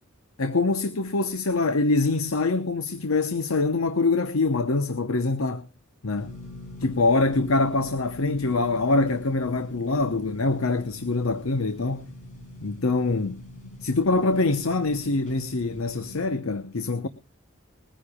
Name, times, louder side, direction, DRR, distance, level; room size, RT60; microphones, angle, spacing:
voice 1, 0.4-5.7 6.0-6.3 6.8-12.1 12.6-13.4 13.8-17.1, left 3 dB, 90° left, 0.9 m, -24 dB
sound 1, 6.1-16.3, left 1 dB, 35° left, 6.6 m, -43 dB
21.0 x 14.5 x 2.3 m
head